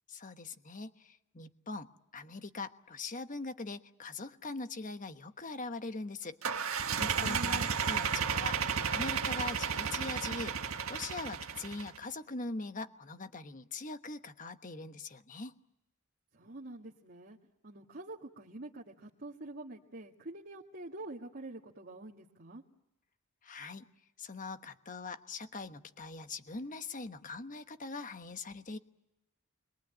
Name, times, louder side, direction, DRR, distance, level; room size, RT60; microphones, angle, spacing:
voice 1, 0.1-15.5 23.4-23.8 24.2-28.8, left 3 dB, 35° left, 9 dB, 1.2 m, -42 dB
sound 1, 6.4-12.0, right 6 dB, 65° right, 1.6 m, -33 dB
voice 2, 7.2-7.7 16.3-17.4 17.6-22.6, right 2 dB, 45° right, -3 dB, 2.0 m, -46 dB
28.5 x 22.5 x 9.0 m, 0.90 s
head